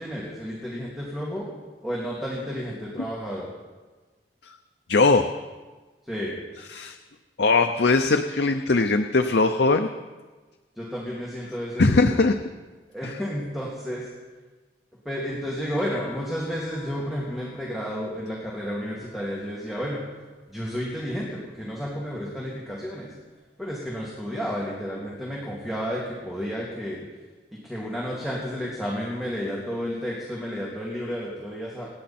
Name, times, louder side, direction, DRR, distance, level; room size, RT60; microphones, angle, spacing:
voice 1, 0.0-1.5 1.8-3.5 6.0-6.4 10.8-12.2 12.9-14.1 15.0-20.0 20.5-23.1 23.6-27.0 27.5-31.9, equal, ahead, -5 dB, 2.5 m, -31 dB
voice 2, 4.9-5.3 6.7-7.0 7.4-9.9 11.8-12.4 13.0-13.1, left 3 dB, 65° left, 6 dB, 0.7 m, -20 dB
sound 1, 15.8-20.3 20.6-22.3 23.8-23.9, left 4 dB, 75° right, 2.6 m, -52 dB
28.0 x 10.0 x 4.3 m, 1.3 s
head